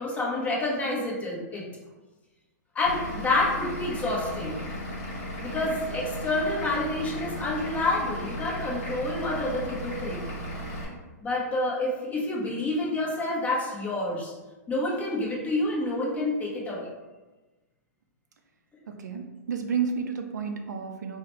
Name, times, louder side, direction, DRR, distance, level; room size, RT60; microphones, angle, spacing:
voice 1, 0.0-1.6 2.7-4.6 5.4-10.3 11.2-14.3 14.7-16.9, left 2 dB, 15° left, -4 dB, 0.8 m, -28 dB
Vehicle / Engine, 2.9-10.9, equal, 45° left, 1.4 m, -36 dB
voice 2, 18.9-21.2, right 6 dB, 80° right, 5 dB, 0.4 m, -31 dB
4.0 x 2.1 x 3.0 m, 1.2 s
hypercardioid pair, 130°, 9 cm